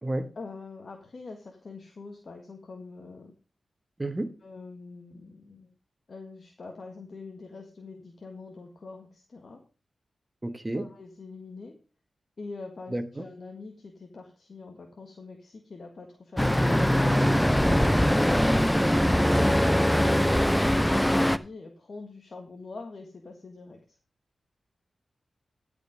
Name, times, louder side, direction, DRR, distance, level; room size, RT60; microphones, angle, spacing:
voice 1, 0.3-3.3 4.4-5.7 6.1-9.6 10.7-11.8 12.4-17.7 18.1-24.0, left 3 dB, 60° left, 1.7 m, -44 dB
voice 2, 4.0-4.3 10.4-10.9 12.9-13.2 19.3-19.6, right 1 dB, 25° right, 1.4 m, -31 dB
Traffic noise roadway noise, 16.4-21.4, equal, 5° left, 0.6 m, -22 dB
13.5 x 5.2 x 5.2 m
cardioid pair, 45°, 0 cm